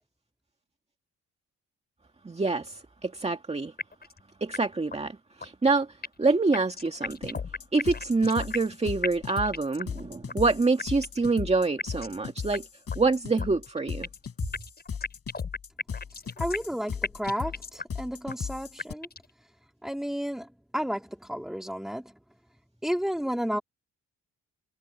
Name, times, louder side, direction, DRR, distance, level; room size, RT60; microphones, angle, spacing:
voice 1, 2.3-3.7 4.4-5.9 6.2-7.4 7.7-12.7 13.0-14.1, right 3 dB, 20° right, 2.0 m, -26 dB
sound 1, 3.8-4.2 4.5-4.6 4.9-5.0 5.4-6.3 6.5-8.8 9.0-10.0 10.3-10.4 10.8-11.3 11.8-12.2 12.5-12.6 12.9-13.0 13.4-14.3 14.5-16.8 17.0-18.0 18.3-18.4 18.8-19.3, left 4 dB, 30° left, 7.4 m, -36 dB
sound 2, 7.1-18.9, left 6 dB, 50° left, 5.9 m, -37 dB
voice 2, 16.4-19.1 19.8-20.5 20.7-22.2 22.8-23.6, equal, ahead, 3.5 m, -32 dB
cardioid pair, 100°, 31 cm